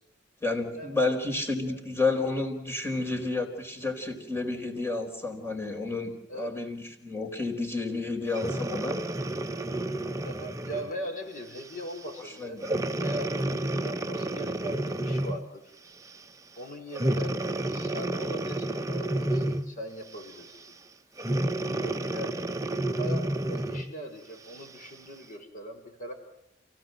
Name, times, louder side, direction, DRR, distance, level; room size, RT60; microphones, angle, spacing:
voice 1, 0.4-9.0 12.4-12.7 13.9-14.1, left 3 dB, 15° left, 2 dB, 4.3 m, -31 dB
Breathing, 8.3-10.9 11.6-11.8 12.6-15.5 16.9-19.8 21.2-23.9 24.5-24.6, right 1 dB, 15° right, 0.9 m, -30 dB
voice 2, 10.2-12.6 12.9-13.3 13.8-15.7 16.6-17.3 17.6-20.6 21.6-22.4 22.8-26.1, equal, 45° left, 4 dB, 5.2 m, -40 dB
29.0 x 16.5 x 7.8 m, 0.79 s
head